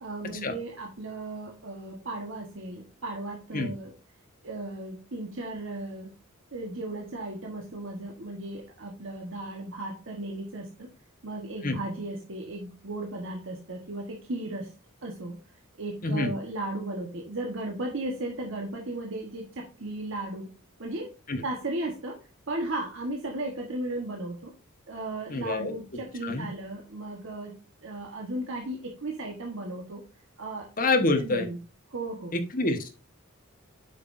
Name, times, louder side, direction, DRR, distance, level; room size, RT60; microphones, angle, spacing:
voice 1, 0.0-3.9 4.4-6.1 6.5-10.9 11.2-14.7 15.0-15.4 15.8-20.5 20.8-21.1 21.4-24.5 24.9-27.6 27.8-30.0 30.4-30.7 31.0-31.6 31.9-32.4, right 2 dB, 60° right, 0 dB, 1.3 m, -35 dB
voice 2, 25.3-25.7 26.2-26.5 30.8-31.5 32.3-32.9, left 2 dB, 40° left, 5 dB, 1.3 m, -26 dB
8.0 x 6.0 x 2.6 m, 0.31 s
head